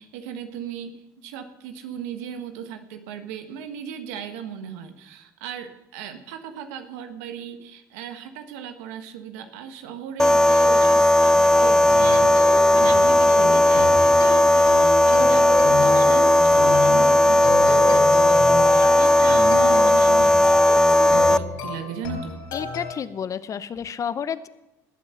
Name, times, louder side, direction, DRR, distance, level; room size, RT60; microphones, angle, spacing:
voice 1, 0.0-20.6 20.9-22.4, right 8 dB, 85° right, 8 dB, 1.4 m, -36 dB
sound 1, 10.2-21.4, left 1 dB, 5° left, 0.5 m, -16 dB
sound 2, 11.5-22.9, left 4 dB, 75° left, 4.4 m, -31 dB
voice 2, 22.5-24.5, left 8 dB, 40° left, 15 dB, 0.7 m, -30 dB
19.5 x 7.7 x 5.8 m, 0.97 s
supercardioid pair, 85°, 8 cm